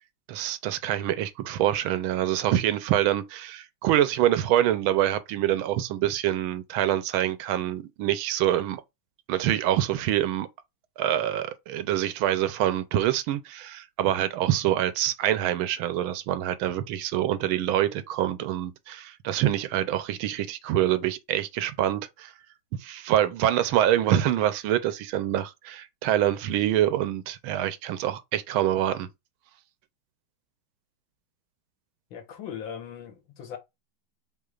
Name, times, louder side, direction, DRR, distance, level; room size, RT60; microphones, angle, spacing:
voice 1, 0.3-8.8 9.3-10.5 11.0-22.3 22.8-29.1, right 12 dB, 80° right, 1.4 m, -25 dB
voice 2, 32.1-33.6, left 8 dB, 70° left, 1.6 m, -39 dB
5.6 x 3.2 x 2.4 m
omnidirectional pair, 2.3 m